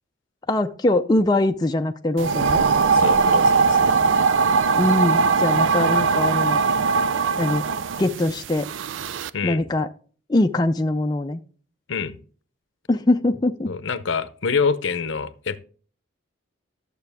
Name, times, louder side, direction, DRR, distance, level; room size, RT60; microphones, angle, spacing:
voice 1, 0.5-2.6 4.7-6.6 7.4-7.7 8.0-8.7 9.4-9.9 10.3-11.4 12.9-13.7, left 1 dB, 20° left, 0.4 m, -22 dB
sound 1, 2.2-9.3, right 5 dB, 70° right, 0.4 m, -20 dB
voice 2, 2.9-3.9 9.3-9.7 11.9-12.2 13.7-15.6, left 5 dB, 65° left, 0.7 m, -26 dB
12.0 x 6.9 x 3.4 m
head